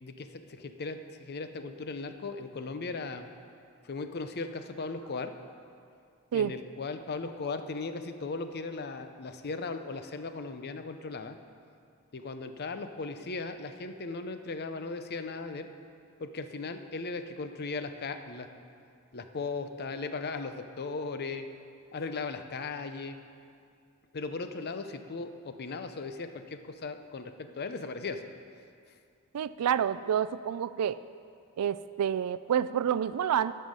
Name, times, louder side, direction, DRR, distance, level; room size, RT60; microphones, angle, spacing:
voice 1, 0.0-3.3 3.8-5.3 6.3-11.4 12.1-15.7 16.2-18.5 19.1-21.5 21.9-23.2 24.1-28.2, left 3 dB, 45° left, 8 dB, 0.6 m, -37 dB
voice 2, 29.3-31.0 31.6-33.5, right 9 dB, 90° right, 15 dB, 0.4 m, -28 dB
11.5 x 5.6 x 7.4 m, 2.3 s
head